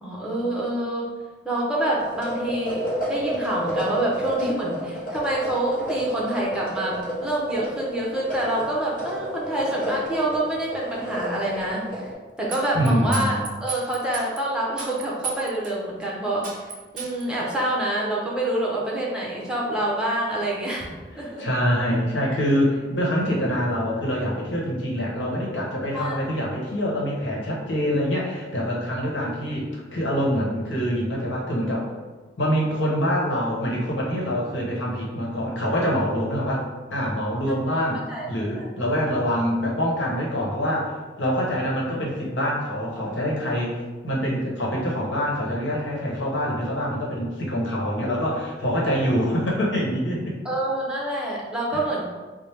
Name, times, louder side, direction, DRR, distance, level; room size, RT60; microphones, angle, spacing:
voice 1, 0.0-1.1 1.4-12.1 12.4-16.5 16.9-21.5 25.9-26.2 37.5-37.8 38.1-38.3 38.6-38.8 50.4-52.0, right 1 dB, 5° right, -5 dB, 0.7 m, -27 dB
sound 1, 2.0-12.1, equal, 45° left, 0.8 m, -31 dB
sound 2, 12.5-14.4 14.8-15.7 16.0-16.1 16.4-17.2, right 5 dB, 45° right, 0.5 m, -34 dB
voice 2, 12.7-13.4 21.2-31.9 32.4-36.6 36.9-40.9 41.2-50.3 51.7-51.8, equal, 80° left, -3 dB, 1.0 m, -25 dB
4.4 x 2.0 x 3.3 m, 1.4 s
head